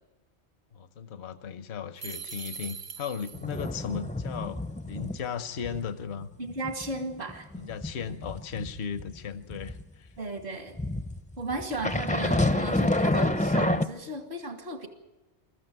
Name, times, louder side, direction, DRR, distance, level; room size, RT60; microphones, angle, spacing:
voice 1, 0.7-4.6 4.8-6.3 7.5-10.1, left 7 dB, 70° left, 11 dB, 1.1 m, -36 dB
sound 1, 2.0-3.7, right 5 dB, 40° right, 0.7 m, -41 dB
sound 2, 3.3-5.3 5.6-5.8 6.2-9.8 10.8-13.9, left 1 dB, 10° left, 0.5 m, -28 dB
voice 2, 6.4-7.5 10.2-10.8 11.4-14.9, right 2 dB, 65° right, 5 dB, 2.2 m, -35 dB
23.0 x 14.0 x 9.2 m, 1.1 s
omnidirectional pair, 1.2 m